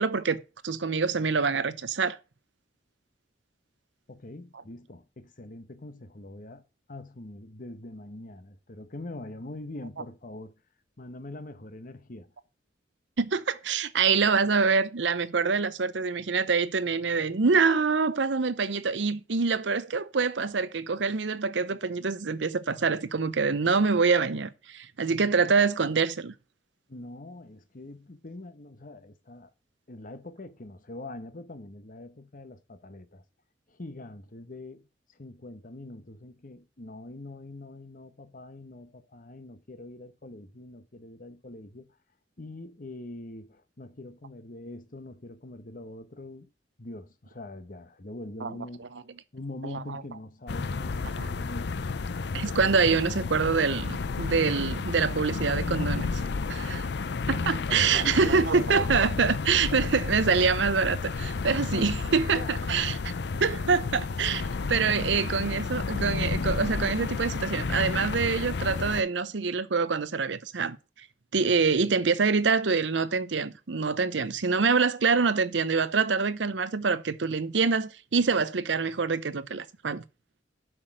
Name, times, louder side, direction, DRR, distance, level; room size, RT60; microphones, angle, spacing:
voice 1, 0.0-2.2 13.2-26.3 48.4-48.5 49.7-50.0 51.2-51.3 52.3-56.1 56.5-56.9 57.3-63.0 63.4-70.8 71.3-80.0, right 5 dB, 80° right, 0.7 m, -25 dB
voice 2, 4.1-6.6 6.9-10.5 11.0-12.3 25.1-25.4 26.9-29.5 29.9-33.2 33.7-41.9 42.4-46.5 46.8-48.9 49.3-51.8 57.3-59.0 61.7-62.5 66.1-66.6, left 2 dB, 50° left, 1.1 m, -43 dB
sound 1, 50.5-69.0, left 4 dB, 65° left, 0.5 m, -31 dB
7.7 x 6.2 x 6.3 m
head